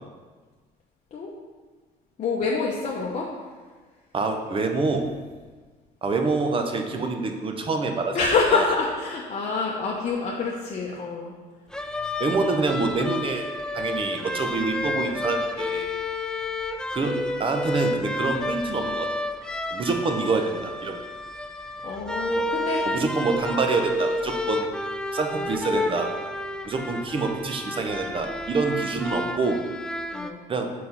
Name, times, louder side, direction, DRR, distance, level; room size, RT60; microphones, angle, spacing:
voice 1, 2.2-3.3 8.1-11.3 21.8-22.8 30.1-30.4, left 4 dB, 45° left, -3 dB, 0.8 m, -26 dB
voice 2, 4.1-5.1 6.0-8.2 8.5-8.7 12.2-13.5 13.7-15.9 16.9-19.1 19.7-21.0 22.8-24.7 25.1-26.1 26.6-29.6 30.5-30.7, right 3 dB, 30° right, 4 dB, 0.7 m, -26 dB
sound 1, 11.7-30.3, left 1 dB, 5° left, 0.3 m, -30 dB
4.6 x 4.2 x 5.4 m, 1.4 s
cardioid pair, 110°, 17 cm